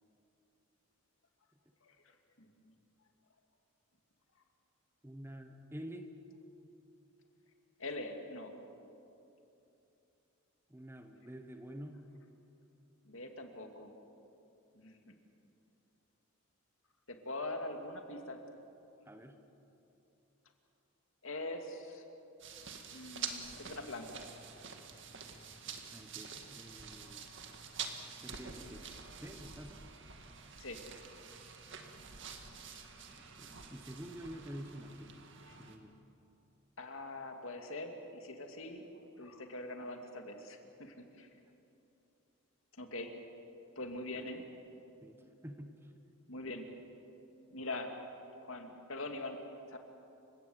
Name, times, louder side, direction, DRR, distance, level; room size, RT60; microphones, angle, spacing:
voice 1, 1.8-2.7 7.8-8.5 13.0-13.9 14.7-15.1 17.1-18.4 21.2-22.0 22.9-24.2 30.6-30.9 35.5-35.6 36.8-38.8 39.2-41.3 42.8-43.2 43.8-44.4 46.3-46.6 47.5-48.0 48.4-49.4 49.7-49.8, left 2 dB, 65° left, 4 dB, 2.5 m, -43 dB
voice 2, 5.0-6.2 10.7-12.0 19.1-19.4 25.9-27.2 28.2-28.8 29.2-29.8 33.1-35.1 35.6-35.9 44.1-44.2 45.0-45.8, equal, 10° right, 6 dB, 1.2 m, -48 dB
sound 1, 22.4-35.8, right 6 dB, 55° right, 2.0 m, -47 dB
29.5 x 17.0 x 8.0 m, 2.8 s
head